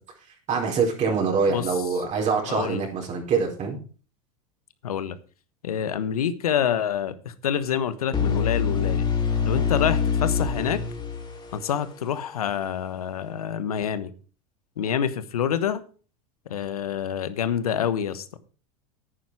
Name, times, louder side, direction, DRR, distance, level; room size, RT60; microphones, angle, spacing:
voice 1, 0.5-3.8, right 5 dB, 40° right, 4.5 m, -24 dB
voice 2, 1.5-2.1 2.5-2.9 4.8-5.2 5.6-9.1 9.4-10.8 11.5-14.1 14.8-15.8 16.5-18.4, left 8 dB, 90° left, 1.2 m, -27 dB
sound 1, 8.1-12.0, left 6 dB, 25° left, 4.2 m, -25 dB
10.5 x 9.6 x 4.8 m
hypercardioid pair, 95°, 18 cm